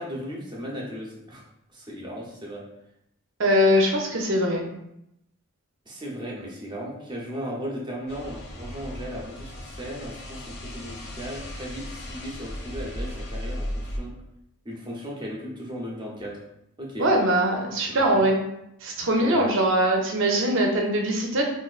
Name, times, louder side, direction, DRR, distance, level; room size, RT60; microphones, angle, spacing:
voice 1, 0.0-1.4 1.7-2.6 5.9-14.1 14.6-16.4 16.8-17.1 17.9-18.2 19.2-19.5, equal, 20° right, -3 dB, 0.7 m, -36 dB
voice 2, 3.4-4.7 17.0-18.3 18.8-21.4, equal, 60° right, 1 dB, 0.6 m, -22 dB
sound 1, 8.1-14.0, equal, 50° left, 0.6 m, -36 dB
4.2 x 2.5 x 2.4 m, 0.81 s
head